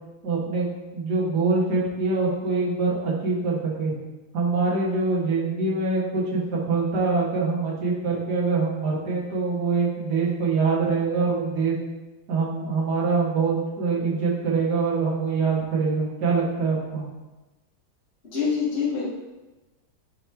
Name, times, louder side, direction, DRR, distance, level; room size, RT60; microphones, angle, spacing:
voice 1, 0.2-3.9 4.3-11.8 12.3-17.0, right 4 dB, 55° right, -4 dB, 1.8 m, -24 dB
voice 2, 18.2-19.1, left 6 dB, 35° left, -8 dB, 1.4 m, -25 dB
9.0 x 3.1 x 3.4 m, 1.1 s
omnidirectional pair, 2.3 m